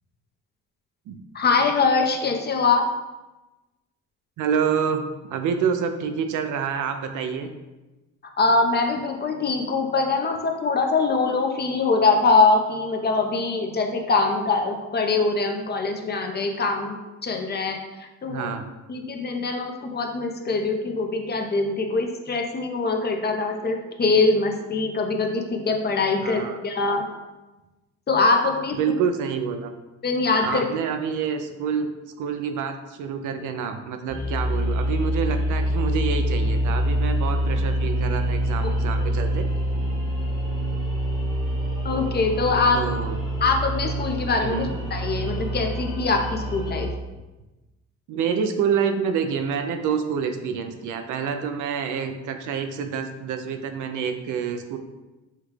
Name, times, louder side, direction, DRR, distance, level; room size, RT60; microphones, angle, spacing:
voice 1, 1.3-2.8 8.4-17.0 17.2-18.5 18.9-27.1 28.1-28.8 30.0-30.7 38.6-38.7 41.8-42.8 43.4-46.9, left 3 dB, 35° left, 3 dB, 0.6 m, -23 dB
voice 2, 4.4-7.5 18.3-18.7 26.2-26.6 28.7-29.7 30.4-31.9 32.2-39.5 42.7-43.2 44.4-44.8 48.1-54.8, right 6 dB, 80° right, 7 dB, 0.5 m, -27 dB
sound 1, 34.1-46.9, right 1 dB, 15° left, 1.0 m, -26 dB
5.7 x 2.3 x 3.2 m, 1.1 s
cardioid pair, 90°, 30 cm